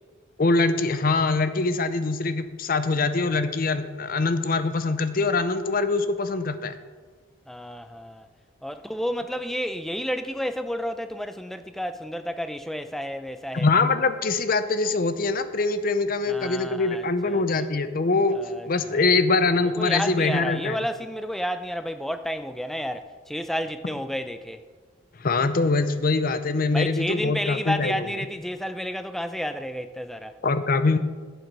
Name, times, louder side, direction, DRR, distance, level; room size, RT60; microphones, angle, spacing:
voice 1, 0.4-6.8 13.5-18.4 18.7-20.8 25.2-28.0 30.4-31.0, left 3 dB, 45° left, 0.6 m, -23 dB
voice 2, 7.5-8.3 8.6-13.7 16.3-17.7 18.3-19.1 19.6-24.6 26.7-30.4, equal, ahead, 0.4 m, -31 dB
11.5 x 8.1 x 4.7 m
head